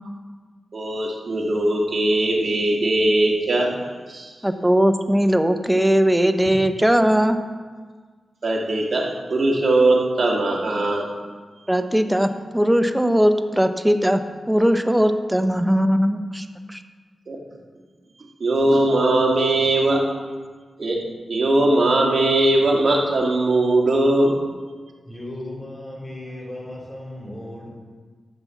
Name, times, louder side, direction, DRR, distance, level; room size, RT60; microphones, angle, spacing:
voice 1, 0.7-3.7 4.1-4.3 8.4-11.1 17.3-17.4 18.4-20.0 20.8-21.0 21.3-24.3, right 2 dB, 55° right, -2 dB, 2.4 m, -20 dB
voice 2, 4.4-7.4 11.7-14.2 14.5-16.4 16.7-16.8, equal, 10° right, 8 dB, 0.8 m, -19 dB
voice 3, 25.1-27.7, left 1 dB, 15° left, -2 dB, 3.8 m, -36 dB
12.5 x 5.3 x 7.3 m, 1.5 s
cardioid pair, 75°, 0 cm